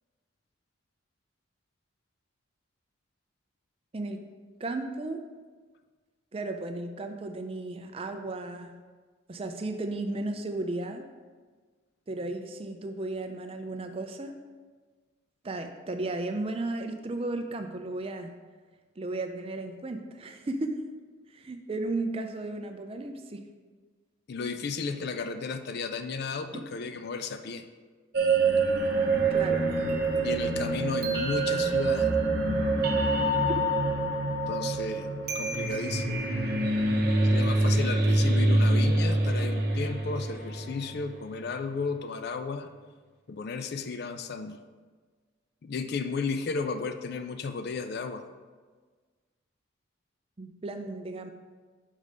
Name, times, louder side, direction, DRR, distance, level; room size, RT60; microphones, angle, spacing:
voice 1, 4.6-5.3 6.3-8.8 9.3-11.1 12.1-14.4 15.4-18.3 19.0-20.8 21.3-23.4 26.5-26.6 29.3-29.7 50.4-51.3, right 2 dB, 25° right, 6 dB, 0.4 m, -34 dB
voice 2, 24.3-27.7 30.2-32.1 34.5-36.3 37.2-42.7 43.3-44.6 45.6-48.2, left 4 dB, 50° left, 9 dB, 0.4 m, -34 dB
sound 1, 28.1-41.1, right 2 dB, 50° right, 0.8 m, -26 dB
5.5 x 4.9 x 5.1 m, 1.4 s
head